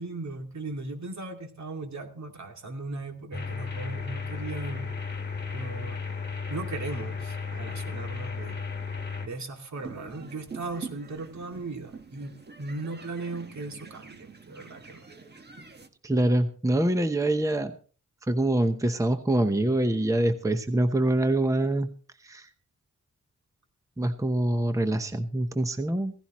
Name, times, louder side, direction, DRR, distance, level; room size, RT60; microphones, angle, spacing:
voice 1, 0.0-4.9 5.5-6.0 6.5-8.6 9.2-15.0, right 3 dB, 65° right, 4 dB, 2.5 m, -37 dB
sound 1, 3.3-9.3, left 5 dB, 35° left, 2.5 m, -34 dB
sound 2, 9.7-15.9, right 4 dB, 35° right, 1.5 m, -45 dB
voice 2, 16.0-17.7 18.3-21.9 22.2-22.5 24.0-26.1, right 1 dB, 10° right, 8 dB, 0.9 m, -25 dB
16.5 x 15.5 x 3.1 m, 0.39 s
wide cardioid pair, 120°, 30 cm